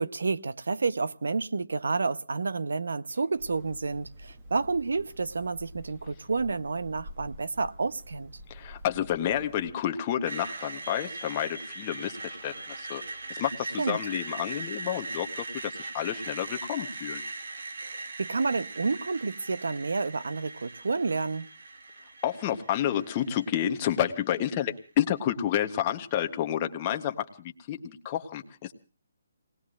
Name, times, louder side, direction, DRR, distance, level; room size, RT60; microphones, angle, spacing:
voice 1, 0.0-8.3 13.8-14.0 17.9-21.5, right 4 dB, 85° right, 0.8 m, -30 dB
Hammer, 3.4-9.7, equal, 15° right, 1.0 m, -48 dB
voice 2, 8.5-13.0 13.3-17.2 22.2-28.7, left 10 dB, 20° left, 0.9 m, -30 dB
Screech, 10.3-24.2, right 3 dB, 60° right, 1.5 m, -40 dB
29.0 x 19.0 x 2.5 m
hypercardioid pair, 180°, 0 cm